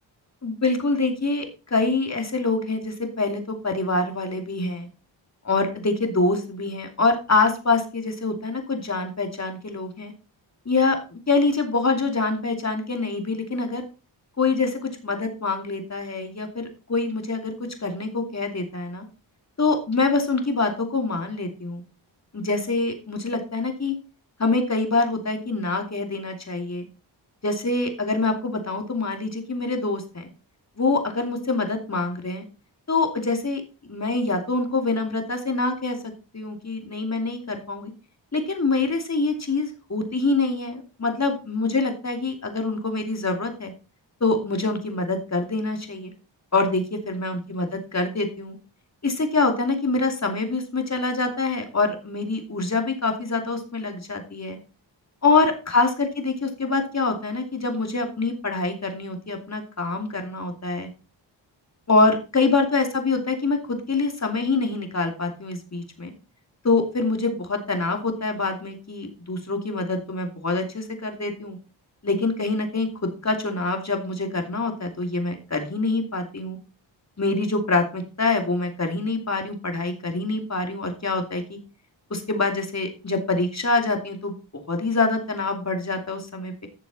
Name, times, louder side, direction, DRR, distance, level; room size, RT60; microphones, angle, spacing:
voice 1, 0.4-4.9 5.4-10.1 10.6-13.8 14.4-17.6 17.8-19.1 19.6-21.8 22.3-24.0 24.4-26.9 27.4-30.3 30.8-32.4 32.9-37.9 38.3-43.7 44.2-46.1 46.5-48.6 49.0-54.6 55.2-60.9 61.9-66.1 66.6-71.6 72.0-76.6 77.2-81.6 82.1-84.3 84.7-86.7, left 3 dB, 35° left, 4 dB, 2.8 m, -25 dB
12.5 x 6.9 x 4.1 m, 0.32 s
cardioid pair, 60°, 46 cm